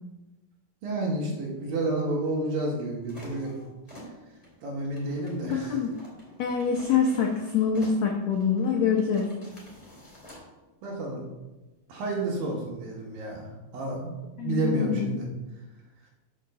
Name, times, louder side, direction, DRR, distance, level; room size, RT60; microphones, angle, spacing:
voice 1, 0.8-3.5 4.6-5.8 10.8-11.2 11.9-15.3, right 2 dB, 70° right, -2 dB, 3.4 m, -30 dB
sound 1, 3.1-10.5, equal, 10° left, 2.0 m, -49 dB
voice 2, 5.4-6.0 6.4-9.3 14.4-15.1, left 6 dB, 80° left, 0 dB, 1.5 m, -25 dB
6.5 x 5.9 x 6.6 m, 1.1 s
omnidirectional pair, 4.3 m